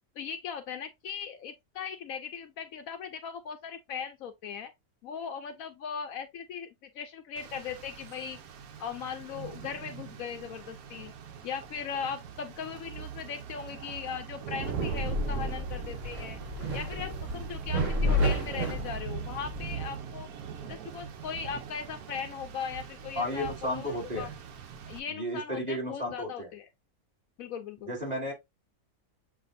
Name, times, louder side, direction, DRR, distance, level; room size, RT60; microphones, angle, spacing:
voice 1, 0.2-4.7 5.0-8.4 8.8-11.1 11.4-16.4 16.7-20.3 20.6-24.3 24.9-26.7 27.4-27.9, left 7 dB, 70° left, 1.0 m, -39 dB
Rain, 7.4-25.0, right 7 dB, 75° right, 1.2 m, -42 dB
sound 1, 14.6-19.7, equal, 55° right, 1.9 m, -31 dB
voice 2, 23.1-24.3 25.1-26.5 27.9-28.3, equal, 25° right, 2.1 m, -33 dB
7.3 x 2.5 x 2.5 m
omnidirectional pair, 1.6 m